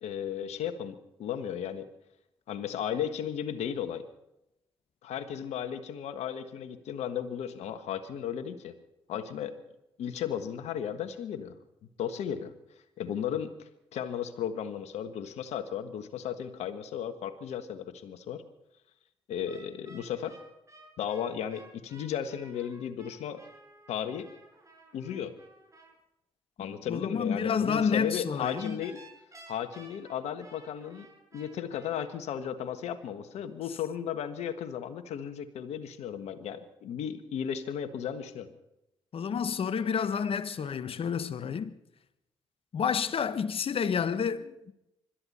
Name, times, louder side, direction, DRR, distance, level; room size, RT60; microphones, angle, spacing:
voice 1, 0.0-1.9 2.5-4.1 5.0-8.7 9.1-9.6 10.0-11.5 12.0-12.5 13.0-13.5 13.9-18.4 19.3-20.4 21.0-23.4 23.9-24.3 24.9-25.3 26.6-29.0 29.5-31.1 31.3-38.5, left 9 dB, 70° left, 1.5 m, -35 dB
sound 1, 19.5-25.9 28.4-32.1, right 2 dB, 25° right, 7.2 m, -54 dB
voice 2, 26.6-28.8 39.1-41.7 42.7-44.7, left 6 dB, 55° left, 1.2 m, -30 dB
25.5 x 13.0 x 4.3 m
hypercardioid pair, 40°, 11 cm